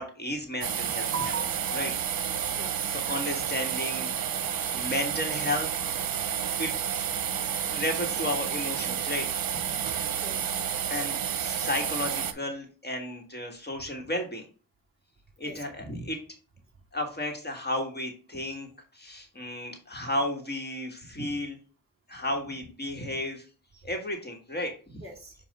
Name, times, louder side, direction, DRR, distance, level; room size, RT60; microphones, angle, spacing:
voice 1, 0.0-1.3 1.7-1.9 2.3-2.6 2.9-4.1 4.7-5.7 6.6-6.7 7.0-7.1 7.7-9.3 10.9-14.5 15.4-16.2 16.9-21.6 22.1-23.5 23.7-25.0, left 1 dB, 25° left, 2 dB, 1.4 m, -33 dB
sound 1, 0.6-12.3, right 8 dB, 70° right, 0.7 m, -30 dB
voice 2, 1.0-3.0 10.2-10.6 15.4-15.8 25.0-25.4, right 4 dB, 35° right, 2 dB, 2.3 m, -40 dB
7.3 x 2.5 x 5.2 m, 0.37 s
cardioid pair, 75°, 36 cm